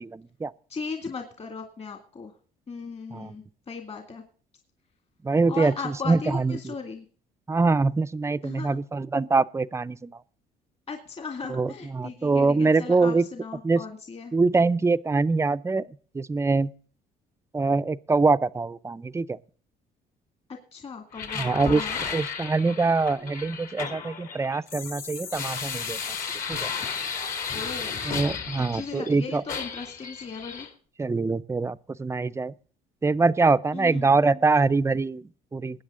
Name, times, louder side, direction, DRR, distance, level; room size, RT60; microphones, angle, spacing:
voice 1, 0.0-0.5 3.1-3.4 5.2-6.7 7.5-10.1 11.5-13.3 13.6-13.8 14.3-15.9 16.1-16.7 17.5-19.4 21.3-26.0 26.5-26.7 28.0-29.4 31.0-32.5 33.0-35.8, right 3 dB, 15° right, 0.5 m, -24 dB
voice 2, 0.7-2.3 2.7-4.2 5.5-7.0 8.4-8.8 10.9-14.3 20.7-22.0 27.5-28.0 28.7-30.7 33.7-34.0, left 5 dB, 35° left, 2.2 m, -37 dB
sound 1, 21.1-29.1 29.5-30.7, left 6 dB, 55° left, 2.6 m, -34 dB
20.5 x 8.7 x 3.7 m
cardioid pair, 110°, 17 cm